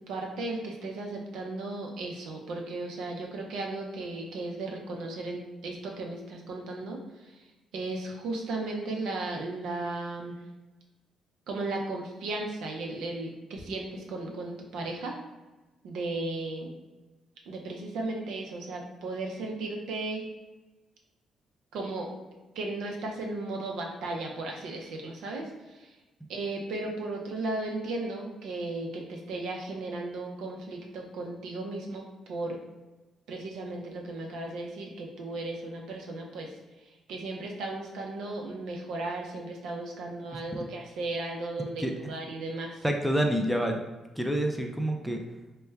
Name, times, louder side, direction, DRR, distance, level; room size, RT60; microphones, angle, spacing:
voice 1, 0.0-7.4 7.7-10.3 11.5-15.2 15.8-16.7 17.5-20.3 21.7-22.1 22.5-26.0 26.3-32.0 32.3-32.6 33.3-36.5 36.8-42.8, right 2 dB, 85° right, 0 dB, 0.6 m, -35 dB
voice 2, 42.8-43.8 44.2-45.2, equal, ahead, 2 dB, 0.4 m, -27 dB
3.2 x 2.2 x 3.3 m, 1.1 s
cardioid pair, 90°, 0 cm